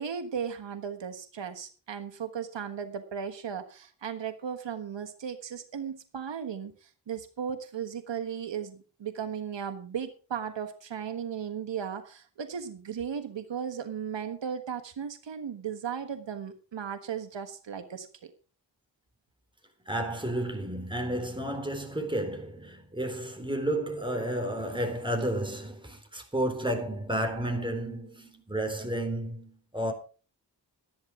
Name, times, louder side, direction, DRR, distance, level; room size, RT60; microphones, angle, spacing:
voice 1, 0.0-18.3, right 7 dB, 85° right, 1.5 m, -36 dB
voice 2, 19.9-29.9, right 1 dB, 10° right, 4.0 m, -32 dB
13.0 x 10.5 x 4.8 m
wide cardioid pair, 75°, 43 cm